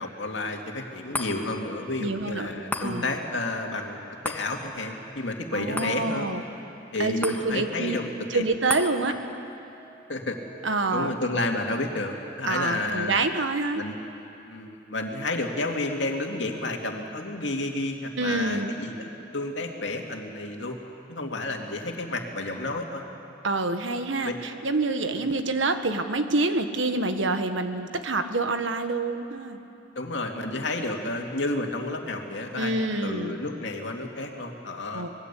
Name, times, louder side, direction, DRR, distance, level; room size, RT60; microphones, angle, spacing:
voice 1, 0.0-6.3 6.9-8.0 8.3-8.4 10.1-10.4 10.9-13.1 13.7-14.0 14.5-20.8 21.1-23.0 24.2-24.4 29.9-35.1, left 2 dB, 65° left, 2 dB, 2.5 m, -31 dB
sound 1, 1.1-13.7 14.2-14.3, left 1 dB, 10° left, 1.6 m, -40 dB
voice 2, 2.0-3.1 5.5-6.4 7.0-8.0 8.3-9.1 10.6-11.1 12.5-13.8 18.2-18.7 23.4-29.6 32.6-33.4 34.9-35.1, right 2 dB, 80° right, 8 dB, 1.5 m, -27 dB
25.5 x 20.5 x 8.4 m, 2.8 s
head